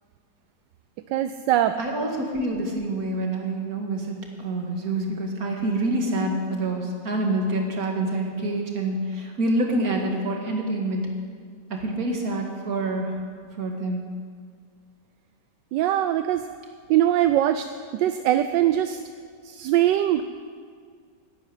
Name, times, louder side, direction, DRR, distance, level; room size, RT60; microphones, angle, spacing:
voice 1, 1.1-1.8 15.7-16.4 16.9-19.0 19.4-20.2, right 12 dB, 80° right, 10 dB, 1.2 m, -22 dB
voice 2, 1.8-11.1 11.8-13.1 13.6-14.0, right 2 dB, 55° right, 1 dB, 2.4 m, -27 dB
11.5 x 9.4 x 9.9 m, 2.1 s
omnidirectional pair, 1.9 m